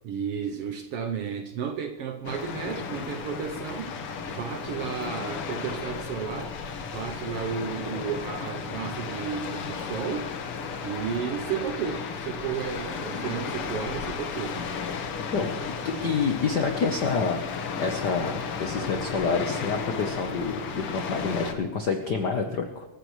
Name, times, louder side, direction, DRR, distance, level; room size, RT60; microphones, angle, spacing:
voice 1, 0.0-6.6 6.9-10.3 10.8-14.6 15.9-16.1, right 7 dB, 70° right, 7 dB, 1.4 m, -33 dB
sound 1, 2.2-21.5, left 5 dB, 55° left, 1.9 m, -34 dB
voice 2, 15.3-17.4 17.8-22.9, left 5 dB, 85° left, 5 dB, 0.9 m, -28 dB
25.5 x 15.0 x 3.2 m, 1.1 s
omnidirectional pair, 3.4 m